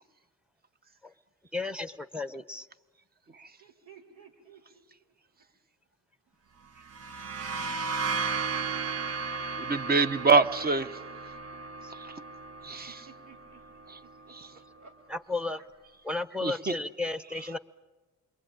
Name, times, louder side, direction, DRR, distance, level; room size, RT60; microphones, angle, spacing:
voice 1, 1.5-2.7 11.8-11.9 15.1-15.6 16.0-17.6, left 3 dB, 5° right, 12 dB, 1.0 m, -34 dB
voice 2, 3.6-4.8 5.4-5.5 13.1-13.6 14.0-14.9, right 6 dB, 85° right, -1 dB, 4.0 m, -55 dB
sound 1, 6.8-14.4, right 4 dB, 55° right, 1.2 m, -35 dB
voice 3, 9.6-10.9 12.6-12.9 14.4-14.5 16.4-16.5, right 4 dB, 30° right, 12 dB, 1.0 m, -24 dB
28.5 x 22.0 x 9.0 m, 1.2 s
cardioid pair, 90°, 30 cm